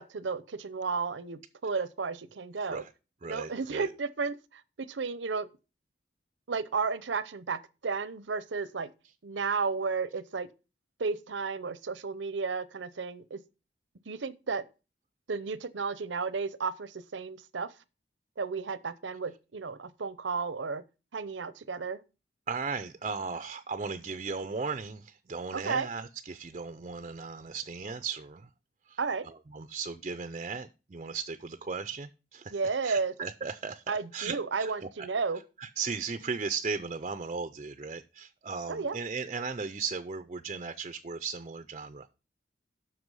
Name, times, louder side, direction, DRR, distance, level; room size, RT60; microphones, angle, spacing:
voice 1, 0.0-2.8 3.3-5.5 6.5-8.9 9.2-10.5 11.0-13.4 14.1-14.6 15.3-17.7 18.4-20.8 21.1-22.0 25.5-25.9 29.0-29.2 32.5-33.1 33.9-35.4 38.7-39.0, right 4 dB, 90° right, 0.7 m, -33 dB
voice 2, 3.2-3.9 22.5-28.5 28.9-29.0 29.2-34.7 35.0-35.1 35.6-42.1, right 5 dB, 35° right, 0.5 m, -36 dB
7.9 x 5.9 x 5.4 m
head